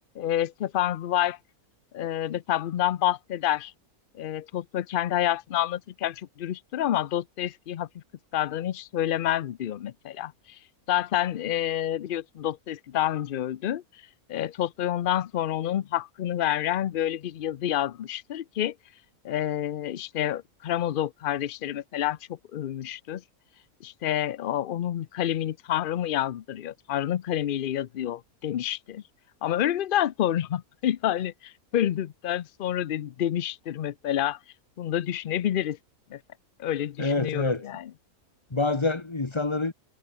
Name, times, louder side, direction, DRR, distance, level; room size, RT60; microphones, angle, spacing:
voice 1, 0.2-1.4 1.9-3.7 4.1-7.9 8.3-10.6 10.9-13.8 14.3-18.7 19.2-22.2 22.5-23.2 23.8-29.0 29.4-34.4 34.8-35.8 36.1-36.2 36.6-37.9, left 11 dB, 75° left, 0.4 m, -28 dB
voice 2, 37.0-37.6 38.5-39.7, left 3 dB, 20° left, 1.1 m, -26 dB
omnidirectional pair, 1.6 m